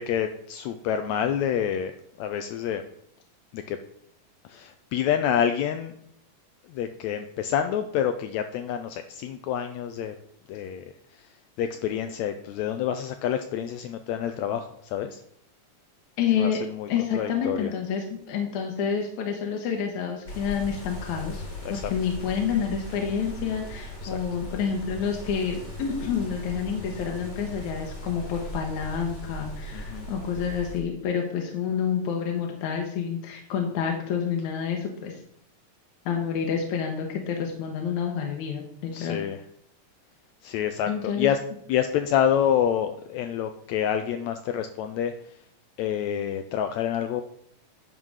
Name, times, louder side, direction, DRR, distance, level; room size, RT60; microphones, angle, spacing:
voice 1, 0.0-1.9 2.2-2.8 3.5-3.8 4.4-5.9 6.7-10.1 10.5-10.8 11.6-15.2 16.4-16.9 17.1-17.7 21.6-21.9 24.0-24.1 29.7-30.1 38.9-39.4 40.4-41.4 41.7-45.1 45.8-47.2, left 9 dB, 85° left, 7 dB, 1.6 m, -27 dB
voice 2, 16.2-16.6 16.9-21.4 21.7-35.2 36.1-39.2 40.9-41.3, left 7 dB, 70° left, 1 dB, 2.2 m, -28 dB
sound 1, 20.3-30.8, equal, 30° left, 1.5 m, -38 dB
10.5 x 3.7 x 6.3 m, 0.69 s
omnidirectional pair, 3.8 m